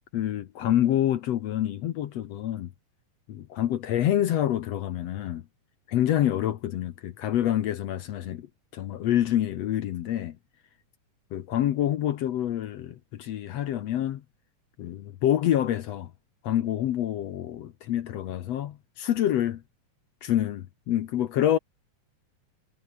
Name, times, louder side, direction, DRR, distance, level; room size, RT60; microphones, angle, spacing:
voice 1, 0.1-2.7 3.3-5.4 5.9-8.5 8.7-10.4 11.3-14.2 14.8-16.1 16.4-19.6 20.2-21.6, left 11 dB, 65° left, 1.9 m, -27 dB
omnidirectional pair, 3.7 m